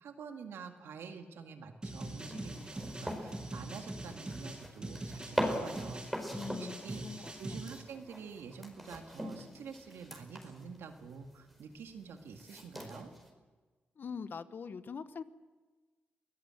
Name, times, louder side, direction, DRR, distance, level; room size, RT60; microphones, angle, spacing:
voice 1, 0.0-13.1, right 5 dB, 85° right, 5 dB, 2.0 m, -48 dB
sound 1, 1.8-7.8, right 2 dB, 20° right, 5.8 m, -43 dB
sound 2, 2.0-13.3, equal, ahead, 4.9 m, -42 dB
voice 2, 6.3-7.6 14.0-15.2, left 6 dB, 55° left, 13 dB, 1.0 m, -43 dB
24.5 x 17.5 x 7.8 m, 1.3 s
cardioid pair, 75°, 4 cm